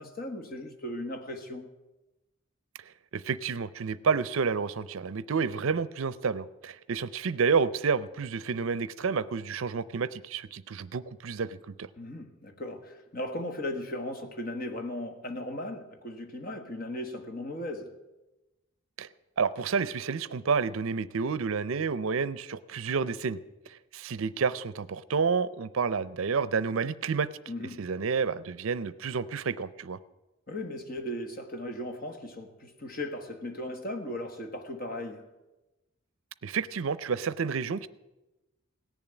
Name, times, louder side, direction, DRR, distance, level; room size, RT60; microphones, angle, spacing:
voice 1, 0.0-1.7 12.0-17.9 27.5-27.8 30.5-35.3, left 1 dB, 40° left, 1.4 m, -37 dB
voice 2, 3.1-11.9 19.0-19.1 19.4-23.4 23.9-27.3 27.8-30.0 36.4-37.9, right 5 dB, 70° right, 0.5 m, -29 dB
17.5 x 7.2 x 9.1 m
head